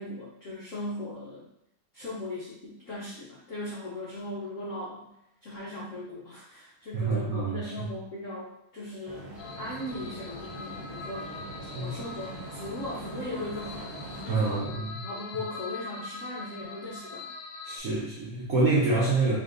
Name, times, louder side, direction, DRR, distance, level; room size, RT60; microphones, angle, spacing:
voice 1, 0.0-1.4 1.9-5.1 5.4-11.3 11.6-14.7 15.0-17.3, left 1 dB, 70° left, -5 dB, 0.7 m, -38 dB
voice 2, 6.9-7.9 11.7-11.9 14.3-15.0 17.6-19.4, right 3 dB, 80° right, -5 dB, 0.8 m, -27 dB
sound 1, 9.0-14.6, right 2 dB, 50° right, 1.3 m, -42 dB
sound 2, 9.4-17.8, left 4 dB, 90° left, 1.5 m, -43 dB
4.0 x 3.6 x 2.5 m, 0.80 s
omnidirectional pair, 2.3 m